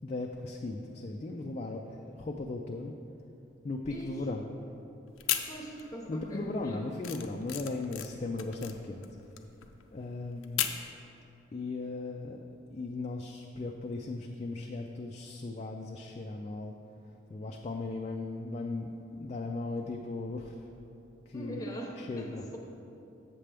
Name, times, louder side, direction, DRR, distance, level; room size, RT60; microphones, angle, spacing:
voice 1, 0.0-2.9 3.6-4.4 6.1-9.1 9.9-10.7 11.5-12.4 12.7-16.7 17.3-20.6 21.3-21.6 22.0-22.5, left 2 dB, 35° left, 2 dB, 0.3 m, -37 dB
sound 1, 5.1-6.1 6.4-10.9, left 11 dB, 85° left, 0.5 m, -36 dB
voice 2, 5.4-6.8 21.3-22.6, right 1 dB, 15° left, 0 dB, 0.8 m, -42 dB
7.5 x 7.3 x 3.4 m, 2.7 s
head